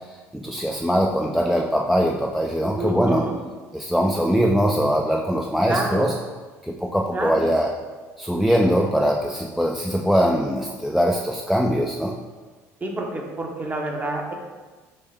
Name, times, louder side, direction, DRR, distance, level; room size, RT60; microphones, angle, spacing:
voice 1, 0.1-3.3 3.7-6.2 6.6-7.7 8.2-12.2, equal, ahead, 0 dB, 0.3 m, -22 dB
voice 2, 2.8-3.4 5.6-6.1 7.1-7.5 9.0-9.1 12.8-14.3, right 2 dB, 25° right, 1 dB, 0.8 m, -28 dB
5.4 x 2.1 x 3.5 m, 1.3 s
supercardioid pair, 75°, 7 cm